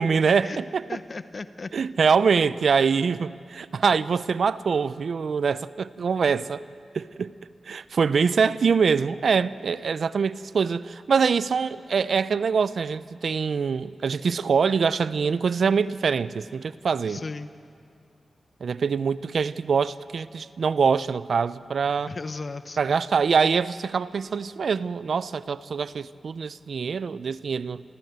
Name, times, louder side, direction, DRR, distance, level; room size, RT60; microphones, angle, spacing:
voice 1, 0.0-0.9 1.7-6.6 6.9-7.3 7.7-17.2 18.6-22.1 22.8-27.8, right 5 dB, 70° right, 0.5 m, -24 dB
voice 2, 0.9-1.7 17.1-17.5 22.1-22.8, left 3 dB, 50° left, 0.9 m, -35 dB
28.5 x 15.0 x 8.1 m
cardioid pair, 50°, 0 cm